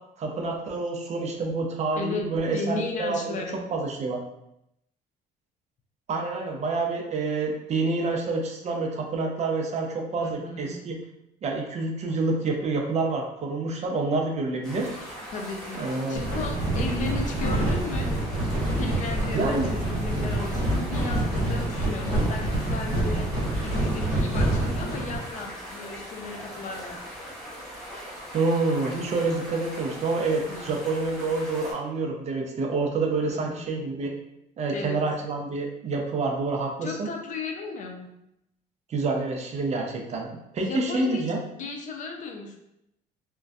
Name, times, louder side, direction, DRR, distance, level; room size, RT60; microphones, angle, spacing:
voice 1, 0.2-3.4 3.7-4.2 6.1-11.0 11.4-14.9 15.8-16.2 19.3-19.7 28.3-34.1 34.6-37.1 38.9-41.4, right 3 dB, 40° right, 1 dB, 0.5 m, -27 dB
voice 2, 2.0-3.6 10.2-10.8 15.3-15.8 16.1-18.1 18.7-23.3 23.6-27.0 30.5-30.7 33.2-33.7 34.7-35.0 36.8-38.1 40.6-41.2 41.5-42.6, left 3 dB, 50° left, 3 dB, 0.4 m, -35 dB
sound 1, 14.6-31.7, equal, 5° left, 1.1 m, -40 dB
sound 2, 16.1-25.2, right 1 dB, 25° right, 1.1 m, -26 dB
2.5 x 2.2 x 2.3 m, 0.81 s
cardioid pair, 110°, 17 cm